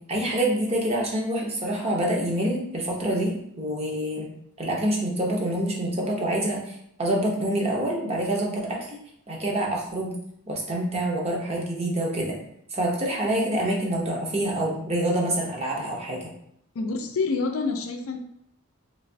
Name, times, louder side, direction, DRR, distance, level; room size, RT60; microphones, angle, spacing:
voice 1, 0.1-4.3 4.6-9.0 9.3-10.1 10.5-12.4 12.7-16.3, right 1 dB, 30° right, -2 dB, 0.7 m, -26 dB
voice 2, 16.7-18.2, left 4 dB, 75° left, 4 dB, 0.4 m, -27 dB
3.2 x 3.0 x 2.6 m, 0.73 s
head